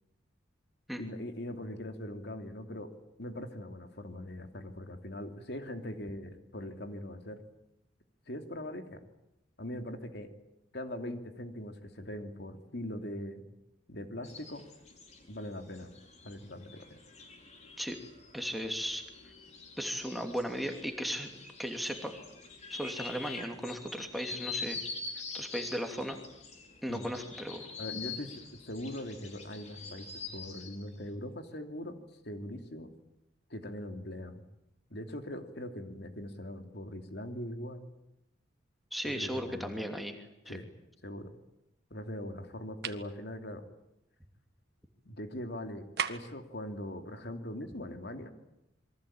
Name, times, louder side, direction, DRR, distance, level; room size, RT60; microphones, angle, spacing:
voice 1, 1.0-2.9 3.2-7.4 8.3-9.0 9.6-10.3 10.7-13.4 13.9-14.6 15.3-15.9 16.2-17.0 26.9-27.1 27.8-30.1 30.3-32.0 32.2-32.9 33.5-34.4 34.9-37.9 39.0-39.8 40.5-40.7 41.0-41.3 41.9-43.7 45.1-48.3, left 1 dB, 60° left, 6 dB, 2.9 m, -41 dB
sound 1, 14.2-30.8, left 4 dB, 35° left, 4.9 m, -45 dB
voice 2, 18.3-19.0 19.8-21.3 21.6-22.1 22.7-24.8 25.3-26.2 26.8-27.7 38.9-40.6, equal, ahead, 4 dB, 2.8 m, -36 dB
sound 2, 42.8-43.1 46.0-46.4, right 7 dB, 55° right, 1.8 m, -35 dB
28.0 x 23.0 x 8.9 m, 0.86 s
head